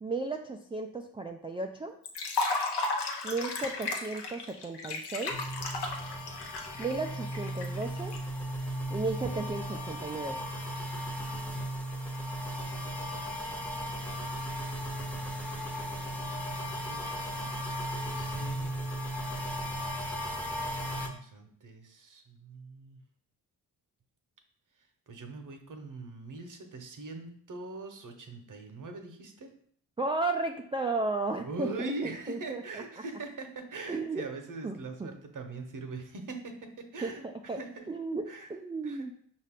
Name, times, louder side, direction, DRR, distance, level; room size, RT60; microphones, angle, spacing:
voice 1, 0.0-1.9 3.2-5.4 6.8-8.2 8.9-10.4 30.0-31.9 32.3-32.8 33.9-34.3 34.6-35.1 37.0-37.6 37.9-39.1, right 3 dB, 15° right, 3 dB, 0.3 m, -34 dB
Liquid, 2.1-8.2, left 3 dB, 65° left, 0.9 m, -34 dB
sound 1, 5.3-21.1, equal, 5° left, 0.8 m, -36 dB
voice 2, 13.0-15.2 16.8-18.8 20.8-23.0 25.1-29.5 31.4-37.3 37.5-37.9 38.3-38.5 38.8-39.1, right 3 dB, 45° right, 5 dB, 0.9 m, -42 dB
5.3 x 2.5 x 3.6 m, 0.62 s
supercardioid pair, 45°, 43 cm